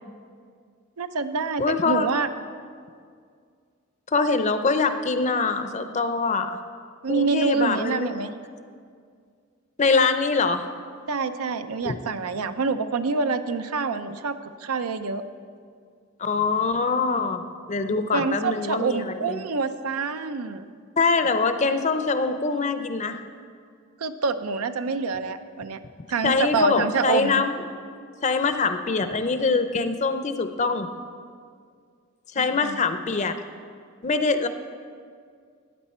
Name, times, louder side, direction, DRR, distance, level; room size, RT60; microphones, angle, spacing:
voice 1, 1.0-2.3 4.3-4.4 7.0-8.3 11.1-15.2 18.1-20.7 24.0-25.8 26.1-27.4 32.4-32.8, right 4 dB, 90° right, 10 dB, 0.6 m, -26 dB
voice 2, 1.6-2.1 4.1-6.6 7.1-8.1 9.8-10.7 11.8-12.0 16.2-17.4 17.7-19.4 21.0-23.2 26.2-27.6 28.2-30.9 32.3-33.3 34.0-34.5, left 4 dB, 35° left, 9 dB, 0.5 m, -24 dB
14.5 x 9.0 x 4.3 m, 2.2 s
head